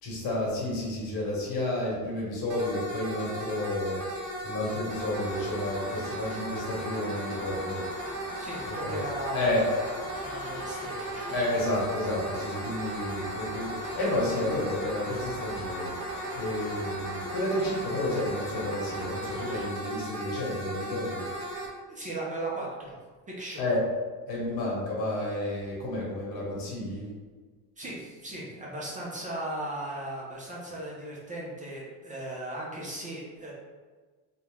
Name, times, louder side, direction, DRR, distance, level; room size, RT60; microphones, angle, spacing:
voice 1, 0.0-4.0 4.4-7.8 8.6-9.0 9.3-9.7 11.3-21.3 23.6-23.8 24.3-27.1, left 1 dB, 65° left, -4 dB, 1.3 m, -31 dB
sound 1, 2.5-21.7, right 1 dB, 45° right, 1.0 m, -37 dB
sound 2, 4.9-19.7, left 1 dB, 45° left, 1.1 m, -43 dB
voice 2, 8.4-11.3 21.9-23.0 23.4-23.6 27.8-33.5, right 1 dB, 20° right, -5 dB, 0.6 m, -37 dB
2.6 x 2.2 x 3.2 m, 1.4 s
cardioid pair, 110°, 38 cm